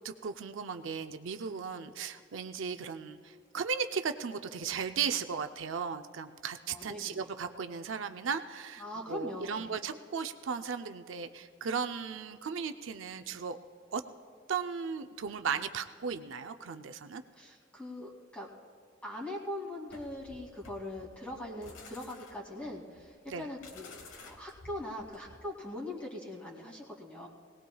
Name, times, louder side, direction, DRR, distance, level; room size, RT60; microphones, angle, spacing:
voice 1, 0.0-13.6 13.9-14.0 14.5-17.2 23.3-23.5, right 6 dB, 75° right, 8 dB, 0.5 m, -36 dB
voice 2, 6.7-7.2 8.8-9.7 17.3-18.5 19.0-27.3, left 1 dB, 5° left, -3 dB, 2.4 m, -41 dB
sound 1, 19.9-25.6, left 3 dB, 75° left, 1.2 m, -53 dB
21.5 x 18.5 x 2.3 m, 2.2 s
head